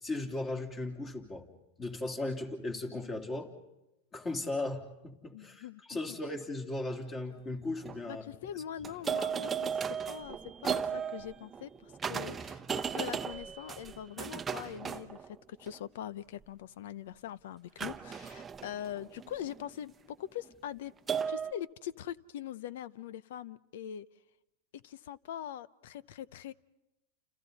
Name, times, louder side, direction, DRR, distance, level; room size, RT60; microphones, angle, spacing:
voice 1, 0.0-1.5 1.8-3.5 4.1-8.2 8.5-8.6, left 2 dB, 25° left, 3 dB, 3.4 m, -37 dB
voice 2, 5.3-6.0 8.0-9.7 10.0-10.4 10.6-20.9 21.3-24.1 24.7-26.5, left 10 dB, 75° left, 19 dB, 0.7 m, -42 dB
sound 1, 6.9-7.0 7.6-8.0 8.8-15.8 17.8-19.7 21.1-21.5, right 7 dB, 20° right, 0.8 m, -36 dB
29.5 x 29.0 x 4.2 m, 0.96 s
supercardioid pair, 125°, 0 cm